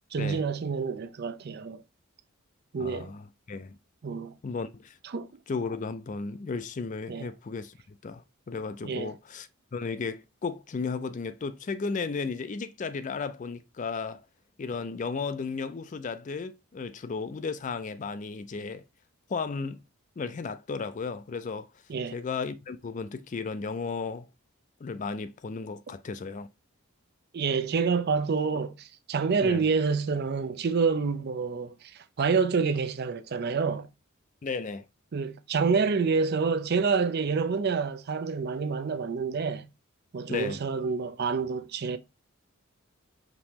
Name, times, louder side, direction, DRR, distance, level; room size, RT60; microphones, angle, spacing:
voice 1, 0.1-1.8 2.7-3.1 4.0-4.3 5.0-5.3 7.1-7.3 8.8-9.1 21.9-22.2 27.3-33.9 35.1-39.7 40.1-42.0, right 5 dB, 50° right, 0.4 m, -28 dB
voice 2, 2.8-3.8 4.4-5.0 5.5-14.2 14.6-18.8 19.3-19.8 20.2-21.7 22.1-24.3 24.8-26.5 29.4-29.6 34.4-34.9 40.3-40.6, left 4 dB, 35° left, 0.4 m, -34 dB
5.2 x 3.0 x 2.8 m
head